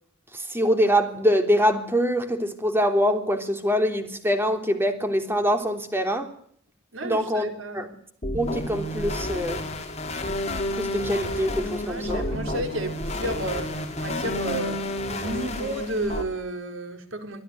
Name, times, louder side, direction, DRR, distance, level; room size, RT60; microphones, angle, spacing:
voice 1, 0.3-6.3 7.0-7.5 7.7-7.9 8.3-9.6 10.7-12.4, equal, 10° right, 3.2 m, -24 dB
voice 2, 6.9-7.9 11.8-14.9 15.2-17.4, right 1 dB, 70° right, 4.5 m, -32 dB
sound 1, 8.2-16.2, left 1 dB, 35° left, 4.5 m, -30 dB
25.5 x 16.0 x 9.3 m
head